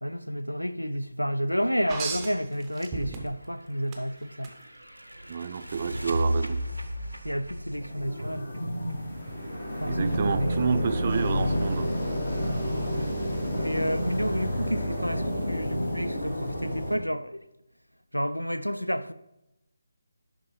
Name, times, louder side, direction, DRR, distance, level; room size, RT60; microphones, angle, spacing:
voice 1, 0.0-4.5 7.2-8.5 9.8-10.5 13.0-13.2 13.5-17.4 18.1-19.1, equal, 90° left, 0.4 m, -30 dB
sound 1, 1.9-3.5 3.9-4.5 6.1-6.2, right 5 dB, 15° right, 0.7 m, -35 dB
sound 2, 3.5-9.3, right 1 dB, 85° right, 0.8 m, -34 dB
voice 2, 5.3-6.6 9.8-11.9, right 6 dB, 35° right, 0.4 m, -29 dB
sound 3, 7.7-16.9, equal, 55° left, 2.3 m, -29 dB
11.0 x 3.8 x 3.2 m
figure-of-eight pair, 150°, 0 cm